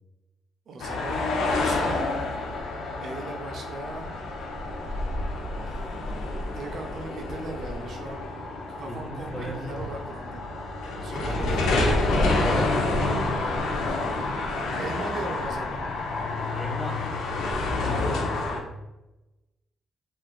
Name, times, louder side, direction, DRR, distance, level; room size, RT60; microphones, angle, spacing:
voice 1, 0.7-2.1 3.0-4.1 5.6-8.2 8.7-10.4 11.0-11.9 12.9-13.8 14.5-15.8 17.8-18.3, right 2 dB, 60° right, 3 dB, 0.4 m, -39 dB
sound 1, 0.8-18.6, left 2 dB, 85° left, 0.5 m, -28 dB
voice 2, 8.9-9.8 11.0-11.6 12.1-14.1 16.5-17.0 17.8-18.2, right 1 dB, 5° left, 1 dB, 0.7 m, -37 dB
3.8 x 2.3 x 2.3 m, 1.0 s
cardioid pair, 90°, 0 cm